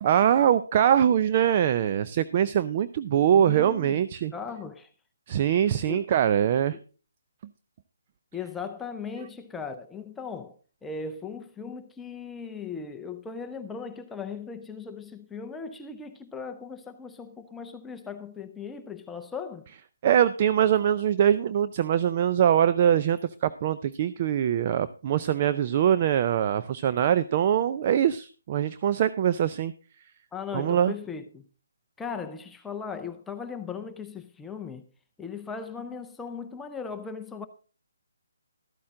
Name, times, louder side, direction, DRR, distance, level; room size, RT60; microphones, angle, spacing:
voice 1, 0.0-4.3 5.3-6.8 20.0-29.7 30.5-30.9, right 9 dB, 35° right, 0.4 m, -23 dB
voice 2, 3.3-4.0 4.3-4.9 5.8-6.0 6.7-6.8 8.3-10.6 10.8-19.7 30.3-31.4 32.0-34.9 35.2-37.5, left 5 dB, 5° left, 0.6 m, -38 dB
13.0 x 8.6 x 3.7 m
hypercardioid pair, 155°, 0 cm